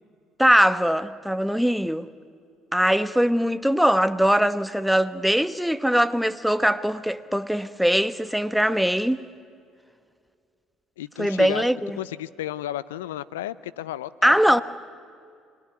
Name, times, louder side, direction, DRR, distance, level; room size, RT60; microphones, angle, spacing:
voice 1, 0.4-2.1 2.7-9.2 11.2-12.0 14.2-14.6, equal, ahead, 1.1 m, -21 dB
voice 2, 11.0-11.6 12.0-14.3, left 13 dB, 85° left, 0.6 m, -33 dB
26.0 x 20.5 x 9.6 m
hypercardioid pair, 60°, 0 cm